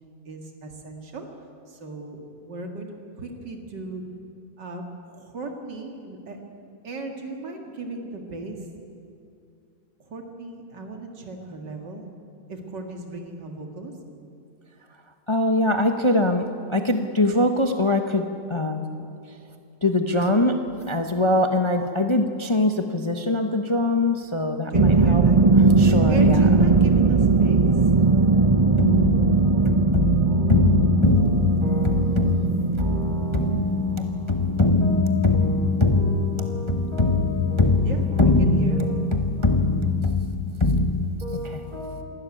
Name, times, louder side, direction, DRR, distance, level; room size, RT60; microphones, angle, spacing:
voice 1, 0.3-1.3 1.7-4.0 4.6-6.4 6.8-8.6 10.0-12.1 12.5-13.9 24.7-25.4 26.1-27.7 37.8-38.8, right 3 dB, 90° right, 2 dB, 2.7 m, -36 dB
voice 2, 15.3-18.8 19.8-25.2 25.8-26.4 28.8-32.9 33.3-41.2, left 2 dB, 20° left, 5 dB, 0.9 m, -22 dB
sound 1, 24.7-33.6, right 3 dB, 30° right, 0.6 m, -19 dB
voice 3, 29.0-30.0 30.3-39.9 41.2-42.0, left 1 dB, 55° right, 0 dB, 5.2 m, -38 dB
27.0 x 12.5 x 9.9 m, 2.5 s
omnidirectional pair, 1.8 m